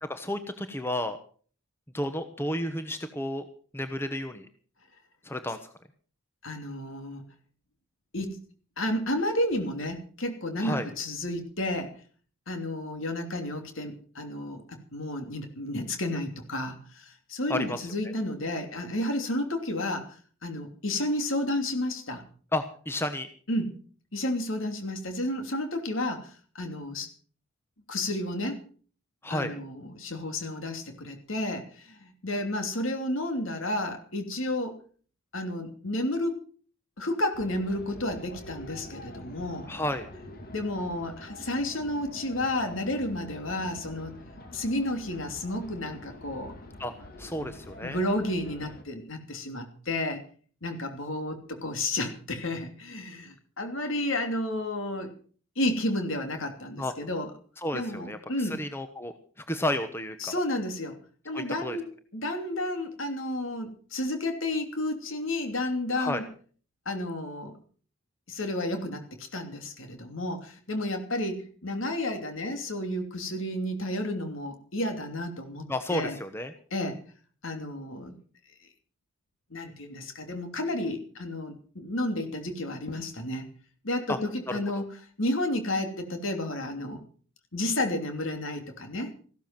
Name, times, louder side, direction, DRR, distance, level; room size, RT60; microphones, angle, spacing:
voice 1, 0.0-1.2 1.9-3.5 3.7-4.5 5.2-5.6 10.6-10.9 17.5-17.8 22.5-23.3 29.2-29.5 39.7-40.1 46.8-46.9 47.2-48.0 56.8-56.9 57.6-59.1 59.5-60.3 61.3-61.8 66.0-66.2 75.7-76.5 84.1-84.2 84.5-84.8, left 1 dB, 10° left, 8 dB, 1.0 m, -32 dB
voice 2, 6.4-7.2 8.1-8.3 8.8-11.9 12.5-20.1 20.4-22.2 23.5-23.7 24.1-27.1 27.9-28.6 29.3-34.8 35.3-36.4 37.0-39.7 40.5-44.2 44.5-46.5 47.4-47.5 47.8-50.2 50.6-55.1 55.6-57.3 57.7-58.6 60.2-61.0 61.2-66.3 66.8-67.6 68.3-76.2 76.7-77.0 77.4-78.2 79.5-83.5 83.8-87.0 87.5-89.1, left 1 dB, 70° left, 6 dB, 3.0 m, -31 dB
sound 1, 37.3-48.8, left 1 dB, 45° left, 2.2 m, -46 dB
15.0 x 13.0 x 5.9 m, 0.43 s
head